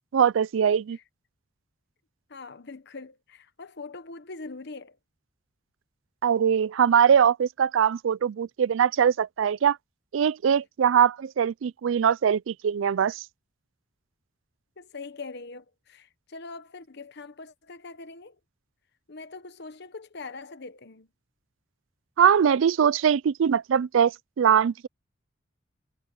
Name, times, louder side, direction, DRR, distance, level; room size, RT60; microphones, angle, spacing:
voice 1, 0.1-1.0 6.2-9.8 10.1-13.2 22.2-24.9, right 8 dB, 80° right, 0.4 m, -22 dB
voice 2, 2.3-5.0 14.8-18.4 19.1-21.1, left 3 dB, 60° left, 1.2 m, -42 dB
head